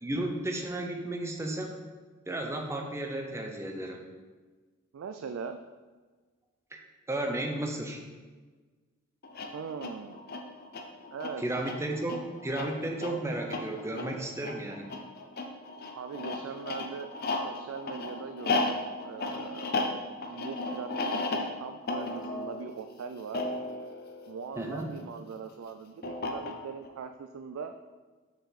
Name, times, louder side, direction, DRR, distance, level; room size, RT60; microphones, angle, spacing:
voice 1, 0.0-1.8 2.3-4.0 6.7-6.8 7.1-8.0 11.4-15.0 24.6-24.9, right 1 dB, 15° right, 2 dB, 0.7 m, -33 dB
voice 2, 4.9-5.6 9.5-10.2 11.1-11.6 16.0-17.1 17.4-19.8 20.3-23.4 24.3-27.9, right 6 dB, 90° right, 7 dB, 0.3 m, -41 dB
sound 1, 9.2-25.0 26.0-26.9, left 2 dB, 50° left, 0.6 m, -35 dB
6.5 x 4.7 x 4.0 m, 1.4 s
head